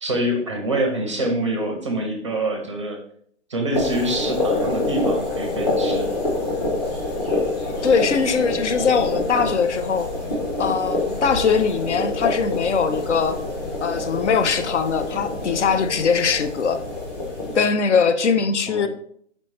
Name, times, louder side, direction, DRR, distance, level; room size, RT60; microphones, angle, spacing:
voice 1, 0.0-3.0 3.5-6.1 18.7-18.9, right 1 dB, 25° right, 3 dB, 0.5 m, -25 dB
sound 1, 3.7-17.6, left 2 dB, 35° left, 1.1 m, -26 dB
voice 2, 7.8-10.1 10.6-13.4 13.8-16.8 17.5-18.9, left 5 dB, 65° left, 10 dB, 0.6 m, -21 dB
4.4 x 3.0 x 4.1 m, 0.65 s
figure-of-eight pair, 145°, 38 cm